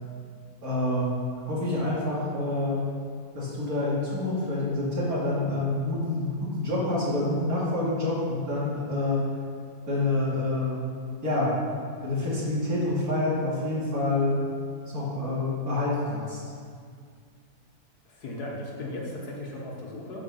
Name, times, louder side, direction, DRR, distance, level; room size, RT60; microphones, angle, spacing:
voice 1, 0.6-2.8 3.3-9.2 9.8-10.8 11.2-11.6 12.0-14.4 14.9-16.4, left 2 dB, 70° right, -7 dB, 3.0 m, -27 dB
voice 2, 18.1-20.2, left 1 dB, 90° left, -2 dB, 2.0 m, -36 dB
11.5 x 4.1 x 5.7 m, 2.1 s
omnidirectional pair, 1.6 m